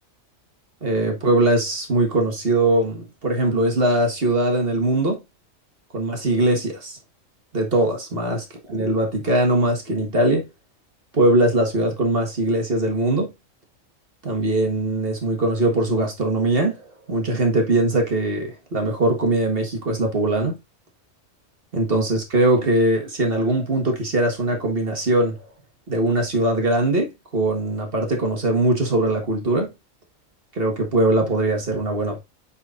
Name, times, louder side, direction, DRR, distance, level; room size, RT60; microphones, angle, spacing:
voice 1, 0.8-5.2 5.9-7.0 7.5-10.5 11.1-13.3 14.2-20.6 21.7-25.4 25.9-29.7 30.5-32.2, right 1 dB, 45° right, 1.7 m, -21 dB
9.0 x 4.3 x 2.5 m
omnidirectional pair, 1.4 m